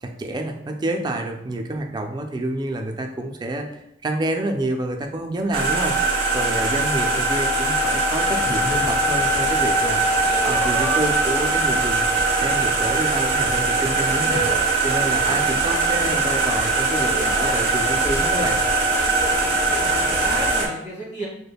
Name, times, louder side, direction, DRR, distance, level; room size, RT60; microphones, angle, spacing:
voice 1, 0.0-6.0 6.3-12.1 12.4-14.5 14.8-18.6, right 1 dB, 25° right, 3 dB, 0.3 m, -28 dB
sound 1, 5.5-20.7, right 3 dB, 90° right, 0.8 m, -21 dB
sound 2, 8.2-20.6, left 1 dB, 70° left, 0.9 m, -34 dB
voice 2, 19.3-21.3, right 1 dB, 40° left, -4 dB, 1.3 m, -34 dB
5.1 x 2.1 x 2.2 m, 0.78 s
head